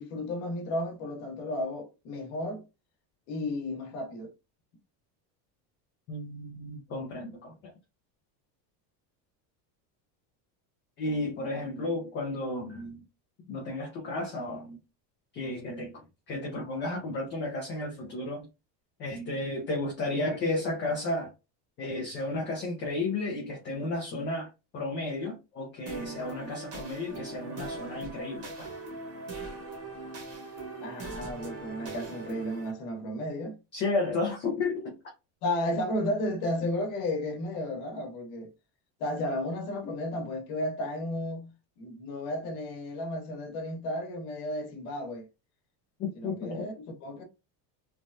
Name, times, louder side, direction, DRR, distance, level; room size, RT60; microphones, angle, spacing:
voice 1, 0.0-2.6 3.3-4.3 30.8-33.6 35.4-38.5 39.0-41.5 41.8-45.3 46.1-47.2, left 1 dB, 65° left, 1.1 m, -33 dB
voice 2, 6.1-7.7 11.0-13.0 13.4-14.8 15.3-18.5 19.0-21.3 21.8-24.5 24.7-28.7 33.7-35.0 46.0-46.7, left 2 dB, 25° left, 0.4 m, -33 dB
sound 1, 25.9-32.7, right 3 dB, 30° right, 0.9 m, -40 dB
3.2 x 2.1 x 2.5 m
cardioid pair, 170°, 48 cm